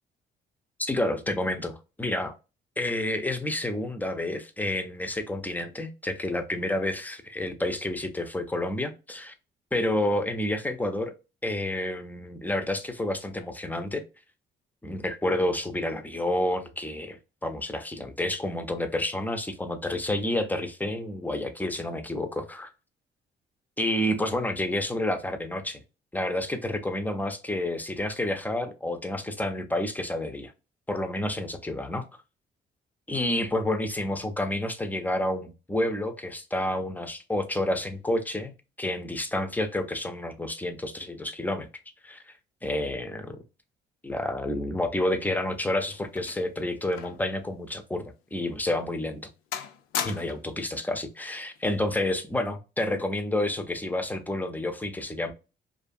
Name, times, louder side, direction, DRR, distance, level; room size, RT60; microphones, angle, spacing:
voice 1, 0.8-2.4 2.8-9.3 9.7-11.1 11.4-14.0 14.8-22.7 23.8-25.8 26.1-30.5 30.9-32.1 33.1-42.3 42.6-43.4 44.0-48.0 48.3-49.3 50.0-55.3, left 1 dB, 10° left, 0.4 m, -29 dB
sound 1, 45.2-47.3 47.6-47.8 48.4-48.6 49.0-49.3 49.5-50.6 51.6-51.8, left 9 dB, 90° left, 0.4 m, -37 dB
2.5 x 2.3 x 2.5 m
cardioid pair, 90°, 20 cm